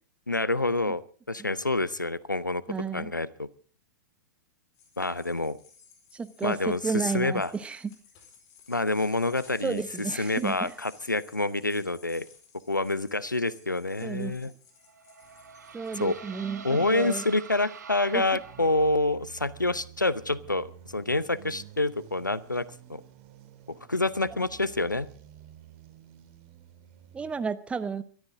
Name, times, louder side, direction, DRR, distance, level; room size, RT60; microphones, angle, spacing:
voice 1, 0.3-1.0 1.3-2.6 2.9-3.5 5.0-5.6 6.4-7.5 8.7-9.8 10.2-12.3 12.7-14.5 16.0-16.1 16.6-20.7 20.9-22.6 22.9-23.0 23.9-25.1, left 2 dB, 90° left, 19 dB, 0.7 m, -27 dB
voice 2, 2.7-3.1 6.1-7.9 9.6-10.7 14.0-14.4 15.7-17.2 18.1-18.2 27.1-28.0, right 5 dB, 10° right, 13 dB, 1.0 m, -32 dB
sound 1, 4.7-15.9, left 6 dB, 35° left, 4.7 m, -56 dB
sound 2, 14.8-19.2, right 6 dB, 70° right, 2.2 m, -46 dB
sound 3, 15.2-16.9 17.5-27.3, right 11 dB, 45° right, 2.9 m, -51 dB
22.5 x 13.5 x 3.7 m, 0.42 s
figure-of-eight pair, 105°, 10 cm